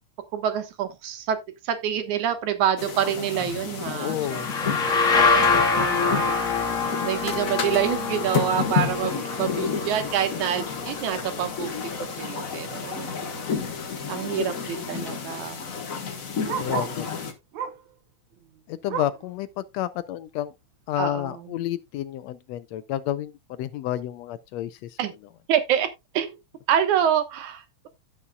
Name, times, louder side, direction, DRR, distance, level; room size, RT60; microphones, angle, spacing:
voice 1, 0.3-1.4 1.6-4.4 4.8-5.0 5.8-6.4 7.0-11.9 12.2-13.5 14.1-15.6 21.0-21.6 25.0-25.1 25.5-25.9 26.1-26.4 26.7-27.9, right 9 dB, 85° right, 2.7 m, -27 dB
sound 1, 2.8-17.3, left 6 dB, 45° left, 1.1 m, -31 dB
voice 2, 3.9-4.5 4.8-5.1 16.6-17.2 18.7-20.5 20.9-25.0, left 12 dB, 80° left, 1.7 m, -30 dB
sound 2, 4.2-11.8, left 4 dB, 30° left, 2.0 m, -25 dB
Bark, 15.5-17.1 17.5-17.9 18.3-19.3 19.8-19.9 20.3-20.4 21.0-21.1, right 7 dB, 70° right, 2.3 m, -35 dB
16.0 x 5.6 x 2.3 m
omnidirectional pair, 3.3 m